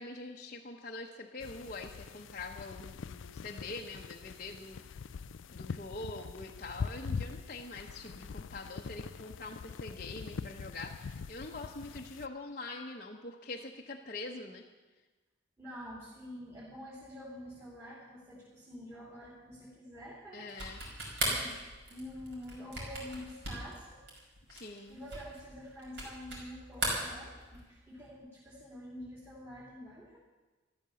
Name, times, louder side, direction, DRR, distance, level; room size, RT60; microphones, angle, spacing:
voice 1, 0.0-4.8 5.5-14.6 20.3-20.8 24.5-25.0, left 2 dB, 45° left, -1 dB, 1.0 m, -44 dB
sound 1, 1.4-12.3, left 5 dB, 85° left, 0.4 m, -43 dB
voice 2, 15.6-20.5 21.3-21.6 21.9-24.0 24.4-24.5 24.9-30.2, equal, 10° right, -6 dB, 3.1 m, -47 dB
sound 2, 20.5-26.5 26.7-27.8, right 2 dB, 65° right, 5.5 m, -38 dB
14.0 x 12.5 x 7.0 m, 1.2 s
head